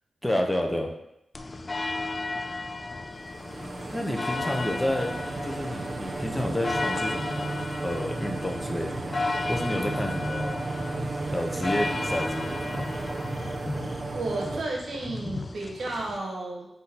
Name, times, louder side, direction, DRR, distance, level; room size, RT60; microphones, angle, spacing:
voice 1, 0.2-0.9 3.9-5.1 5.4-7.5 7.8-9.2 9.5-10.6 11.3-12.9, left 1 dB, 15° left, 2 dB, 0.7 m, -30 dB
sound 1, 1.3-16.2, left 3 dB, 45° left, 0.3 m, -34 dB
sound 2, 3.2-14.6, right 3 dB, 55° right, 0.3 m, -34 dB
voice 2, 14.1-16.7, right 2 dB, 80° right, -1 dB, 0.9 m, -32 dB
3.7 x 2.7 x 4.2 m, 0.83 s
cardioid pair, 45°, 0 cm